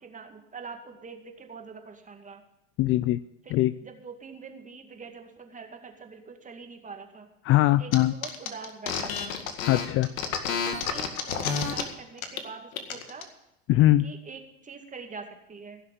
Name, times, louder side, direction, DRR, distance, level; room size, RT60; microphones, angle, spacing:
voice 1, 0.0-2.4 3.5-7.3 7.8-9.3 10.2-10.3 10.7-13.3 14.0-15.8, right 5 dB, 20° right, 4 dB, 2.2 m, -44 dB
voice 2, 2.8-3.2 3.5-3.7 7.4-8.1 9.7-10.1 13.7-14.1, left 15 dB, 35° left, 16 dB, 0.4 m, -21 dB
sound 1, 7.9-8.0 8.2-11.8 12.2-12.4 12.7-13.2, left 6 dB, 85° left, 2.0 m, -30 dB
17.0 x 6.4 x 7.7 m, 0.89 s
supercardioid pair, 110°, 40 cm